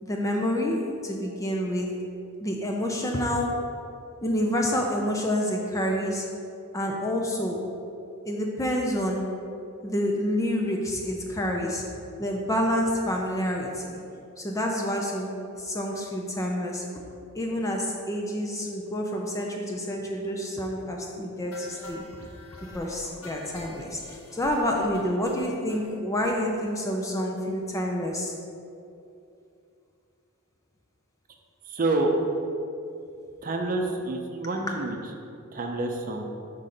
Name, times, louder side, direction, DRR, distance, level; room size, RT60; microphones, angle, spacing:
voice 1, 0.0-2.0 2.4-3.6 4.2-6.3 6.7-7.7 8.2-9.3 9.8-11.9 12.2-14.0 14.4-16.9 17.3-22.0 22.7-28.3 34.7-34.8, equal, 15° left, 0 dB, 0.4 m, -28 dB
sound 1, 21.5-25.8 26.2-26.3 26.7-26.8 27.0-27.1 27.4-27.5, left 1 dB, 85° left, 1.0 m, -47 dB
voice 2, 31.7-32.1 33.4-35.0 35.5-36.2, right 2 dB, 40° right, 3 dB, 0.6 m, -28 dB
5.1 x 3.7 x 5.8 m, 2.6 s
head